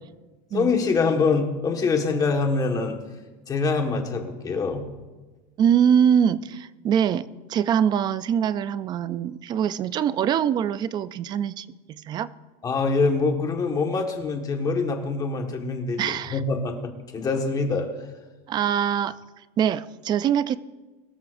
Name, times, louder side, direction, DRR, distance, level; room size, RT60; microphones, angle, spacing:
voice 1, 0.5-3.0 3.5-4.8 12.6-16.7 17.1-17.9, left 4 dB, 20° left, 3 dB, 1.5 m, -24 dB
voice 2, 5.6-12.3 16.0-16.4 18.5-19.1 19.6-20.6, right 8 dB, 20° right, 16 dB, 0.3 m, -23 dB
22.0 x 13.0 x 2.5 m, 1.2 s
supercardioid pair, 160°, 20 cm